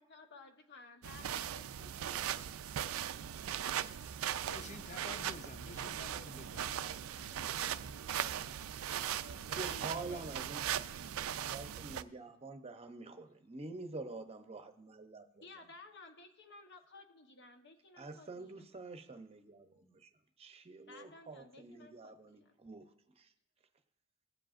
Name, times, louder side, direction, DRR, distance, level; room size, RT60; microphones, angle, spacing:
voice 1, 0.0-2.3 4.9-5.0 6.6-8.6 15.4-18.6 20.9-22.6, left 3 dB, 55° left, 5 dB, 1.1 m, -57 dB
sound 1, 1.0-12.0, right 10 dB, 75° right, 0.4 m, -39 dB
voice 2, 4.5-6.7 9.4-10.5, left 5 dB, 35° left, 14 dB, 0.4 m, -52 dB
voice 3, 9.2-10.6 11.4-15.5 18.0-20.1 20.4-22.9 23.2-23.3, right 3 dB, 30° right, 7 dB, 0.7 m, -47 dB
17.0 x 7.6 x 2.5 m, 0.88 s
head